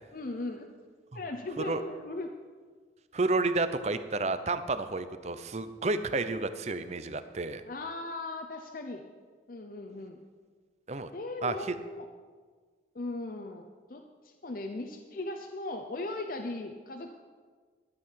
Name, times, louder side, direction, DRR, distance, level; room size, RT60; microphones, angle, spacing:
voice 1, 0.1-0.7 1.1-2.3 7.6-9.0 9.5-10.2 11.1-12.1 12.9-17.1, left 2 dB, 50° left, 4 dB, 0.6 m, -38 dB
voice 2, 3.1-7.6 10.9-11.1 11.4-11.7, right 3 dB, 35° right, 11 dB, 0.6 m, -31 dB
12.0 x 8.6 x 5.7 m, 1.5 s
head